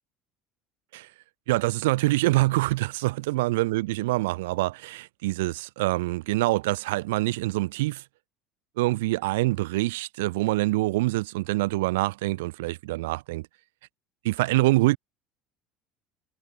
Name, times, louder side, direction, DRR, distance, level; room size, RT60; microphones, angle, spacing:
voice 1, 1.5-8.0 8.8-13.5 14.2-15.0, right 19 dB, 75° right, 3.4 m, -25 dB
hypercardioid pair, 70°, 0 cm